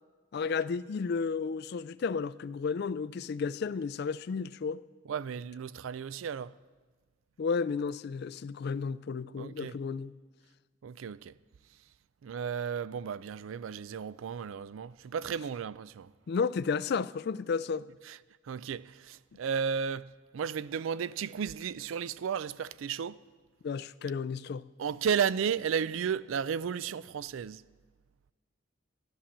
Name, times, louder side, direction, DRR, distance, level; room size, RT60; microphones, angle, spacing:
voice 1, 0.3-4.8 7.4-10.1 16.3-17.8 23.6-24.7, left 5 dB, 55° left, 0.3 m, -32 dB
voice 2, 5.1-6.5 9.4-9.8 10.8-11.3 12.2-16.1 18.1-18.2 18.4-23.2 24.8-27.6, right 7 dB, 80° right, 0.4 m, -34 dB
12.5 x 11.5 x 7.3 m
head